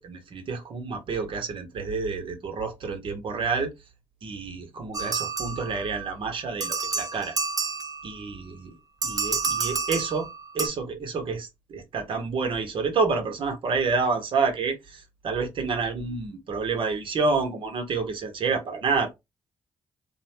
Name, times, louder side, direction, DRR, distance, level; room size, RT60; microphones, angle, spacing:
voice 1, 0.0-3.7 4.2-7.4 8.0-8.7 9.0-10.3 10.5-19.1, right 4 dB, 65° right, 0.9 m, -28 dB
sound 1, 4.9-6.1 6.6-8.3 9.0-10.7, right 5 dB, 40° right, 0.5 m, -29 dB
2.6 x 2.0 x 2.9 m
supercardioid pair, 50°, 9 cm